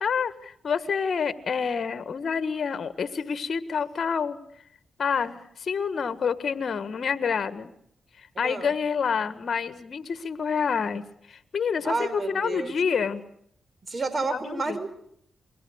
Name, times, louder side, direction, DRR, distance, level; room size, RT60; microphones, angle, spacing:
voice 1, 0.0-4.4 5.0-7.7 8.2-13.2 14.2-14.8, left 6 dB, 60° left, 12 dB, 1.7 m, -28 dB
voice 2, 11.8-12.7 13.8-14.9, right 3 dB, 40° right, 12 dB, 5.4 m, -30 dB
28.5 x 22.0 x 6.4 m, 0.70 s
cardioid pair, 55°, 0 cm